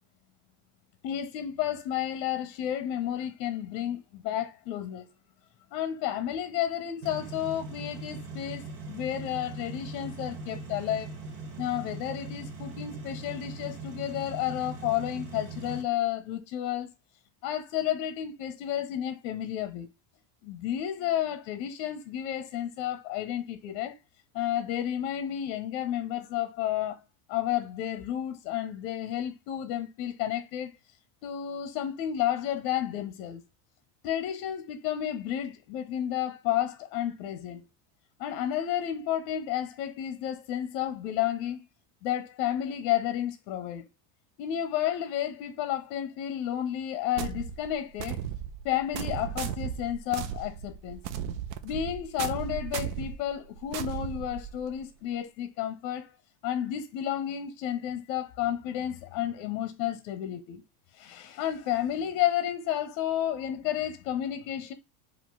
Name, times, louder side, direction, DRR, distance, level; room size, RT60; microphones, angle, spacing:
voice 1, 1.0-5.1 5.7-11.1 11.6-16.9 17.4-19.9 20.4-23.9 24.3-27.0 27.3-30.7 31.2-33.4 34.0-37.6 38.2-41.6 42.0-43.8 44.4-48.2 48.6-51.0 51.6-56.1 56.4-60.6 60.9-64.7, left 11 dB, 60° left, 0.8 m, -31 dB
sound 1, 7.0-15.8, right 3 dB, 55° right, 1.5 m, -40 dB
sound 2, 47.2-54.8, right 9 dB, 90° right, 0.8 m, -36 dB
4.9 x 2.5 x 3.9 m
cardioid pair, 165°, 50 cm